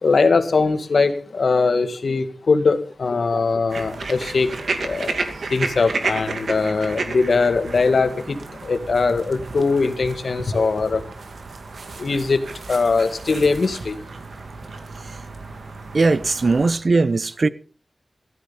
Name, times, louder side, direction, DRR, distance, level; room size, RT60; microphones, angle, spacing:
voice 1, 0.0-4.5 4.8-5.1 5.5-8.4 8.6-11.0 12.0-12.4 12.7-14.0, left 4 dB, 75° left, 2.1 m, -20 dB
sound 1, 3.7-16.8, right 3 dB, 85° right, 2.4 m, -32 dB
voice 2, 15.9-17.5, right 3 dB, 55° right, 0.8 m, -19 dB
16.0 x 13.5 x 5.7 m
wide cardioid pair, 110°, 0 cm